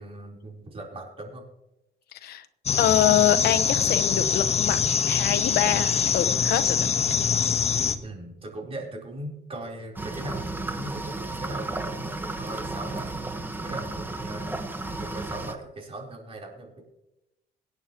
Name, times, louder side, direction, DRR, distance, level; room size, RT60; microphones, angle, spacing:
voice 1, 0.0-1.4 5.7-5.8 8.0-13.2 13.6-14.5 15.0-16.8, right 1 dB, 35° right, 0 dB, 4.0 m, -39 dB
sound 1, 2.7-8.0, left 7 dB, 40° left, 1.3 m, -24 dB
voice 2, 2.8-4.8 5.0-6.9, left 11 dB, 70° left, 12 dB, 1.1 m, -25 dB
sound 2, 10.0-15.5, right 2 dB, 10° right, 1.4 m, -33 dB
25.5 x 9.4 x 3.1 m, 0.90 s
cardioid pair, 110°, 17 cm